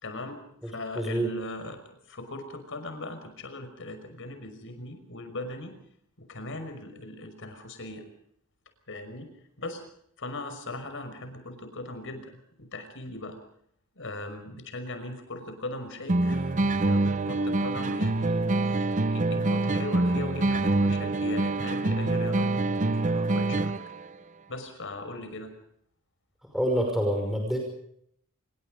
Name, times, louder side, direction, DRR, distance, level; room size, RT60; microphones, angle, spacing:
voice 1, 0.0-0.4 0.6-5.7 6.2-8.0 8.9-9.3 9.6-9.8 10.2-12.3 12.6-13.4 14.0-16.5 16.8-23.7 24.5-25.5, left 2 dB, 60° left, 9 dB, 5.8 m, -39 dB
voice 2, 1.0-1.3 26.5-27.6, equal, ahead, 1 dB, 5.6 m, -26 dB
sound 1, 16.1-24.1, right 2 dB, 35° right, 0.8 m, -25 dB
27.5 x 22.5 x 5.2 m, 0.69 s
head